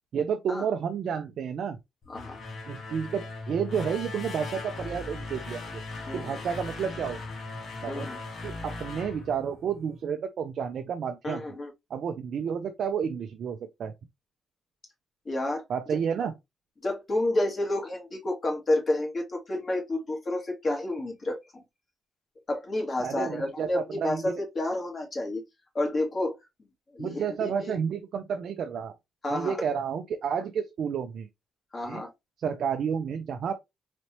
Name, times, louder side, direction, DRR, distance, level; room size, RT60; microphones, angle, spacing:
voice 1, 0.1-1.8 2.7-5.6 6.1-7.2 7.8-8.1 8.4-11.4 11.9-13.9 15.7-16.3 23.0-24.4 27.0-28.9 29.3-31.3 31.9-32.0 32.4-33.5, right 7 dB, 60° right, 0.5 m, -31 dB
sound 1, 2.0-10.0, left 3 dB, 55° left, 1.4 m, -38 dB
voice 2, 6.1-6.4 7.9-8.2 11.2-11.7 15.3-15.6 16.8-21.6 22.5-25.4 25.7-26.3 26.9-27.8 29.2-29.6 31.7-32.1, left 1 dB, 35° left, 1.9 m, -30 dB
4.1 x 3.2 x 2.8 m
cardioid pair, 90°, 0 cm